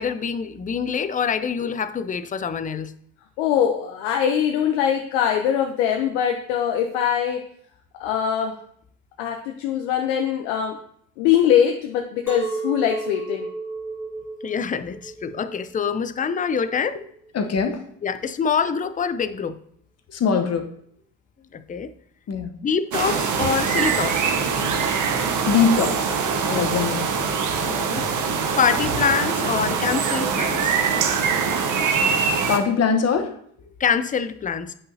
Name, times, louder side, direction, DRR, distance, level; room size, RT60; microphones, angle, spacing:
voice 1, 0.0-2.9 14.4-17.0 18.0-19.6 21.5-21.9 22.6-24.3 27.7-30.7 33.8-34.7, left 6 dB, 20° left, 13 dB, 0.5 m, -25 dB
voice 2, 3.4-7.4 8.0-8.5 9.2-10.8 11.2-13.5, left 9 dB, 70° left, 3 dB, 0.8 m, -22 dB
Chink clink, 12.3-17.4, right 2 dB, 5° right, 2.3 m, -34 dB
voice 3, 17.3-17.8 20.1-20.7 22.3-22.5 25.5-26.1 26.5-27.1 32.5-33.3, left 6 dB, 40° left, 6 dB, 1.1 m, -21 dB
sound 1, 22.9-32.6, right 5 dB, 50° right, 1.0 m, -23 dB
8.6 x 5.4 x 2.8 m, 0.66 s
hypercardioid pair, 60°, 40 cm